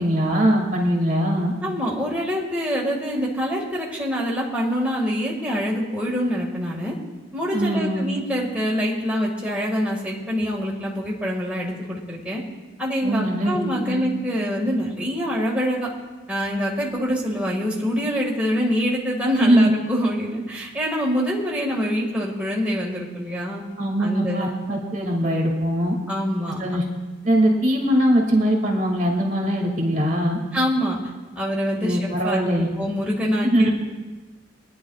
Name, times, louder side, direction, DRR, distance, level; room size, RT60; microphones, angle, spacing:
voice 1, 0.0-1.5 7.5-8.1 13.0-14.0 19.4-19.7 23.8-26.0 26.6-26.8 27.2-30.4 31.7-32.7 33.4-33.7, equal, 40° right, 0 dB, 2.2 m, -21 dB
voice 2, 1.6-6.9 7.3-12.4 12.8-15.9 16.3-23.6 24.0-24.6 26.1-26.9 30.5-31.0 31.4-33.7, equal, 5° right, -4 dB, 1.8 m, -25 dB
24.0 x 10.0 x 2.4 m, 1.3 s
head